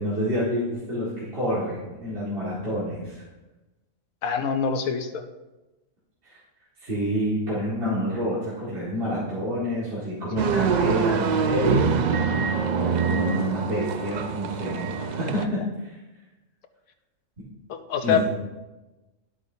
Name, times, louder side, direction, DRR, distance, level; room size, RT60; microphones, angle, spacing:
voice 1, 0.0-3.2 6.2-6.4 6.8-11.8 12.8-15.9 18.0-18.2, equal, 40° right, -9 dB, 2.2 m, -28 dB
voice 2, 4.2-5.2 17.7-18.2, left 7 dB, 80° left, 8 dB, 1.2 m, -25 dB
sound 1, 10.4-15.5, right 6 dB, 85° right, 0.4 m, -24 dB
11.5 x 8.5 x 2.7 m, 1.1 s
omnidirectional pair, 1.4 m